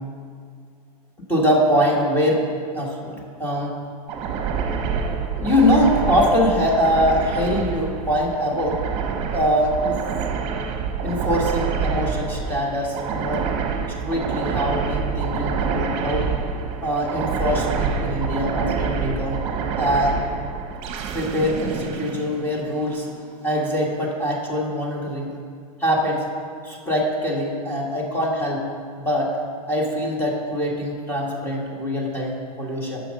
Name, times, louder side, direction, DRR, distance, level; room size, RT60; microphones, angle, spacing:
voice 1, 1.3-2.4 2.7-3.1 3.4-3.7 5.4-8.8 9.3-9.9 11.0-13.5 14.0-16.3 16.8-19.4 19.8-20.2 21.1-25.3 25.8-26.2 26.6-28.6 29.0-29.3 29.7-33.0, equal, 10° left, -2 dB, 1.5 m, -23 dB
sound 1, 4.1-22.9, right 5 dB, 30° right, 1.0 m, -27 dB
10.0 x 6.3 x 5.3 m, 2.2 s
supercardioid pair, 155°, 20 cm